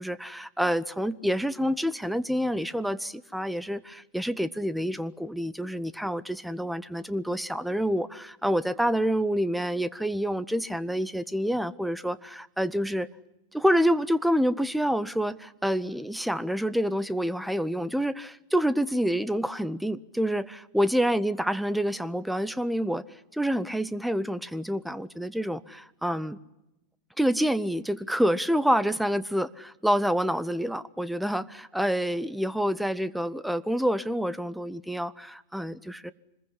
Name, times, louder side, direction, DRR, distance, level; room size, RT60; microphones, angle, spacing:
voice 1, 0.0-13.1 13.5-20.5 20.7-23.0 23.3-26.4 27.2-36.1, equal, ahead, 0.9 m, -27 dB
25.5 x 21.5 x 10.0 m
figure-of-eight pair, 90°, 0 cm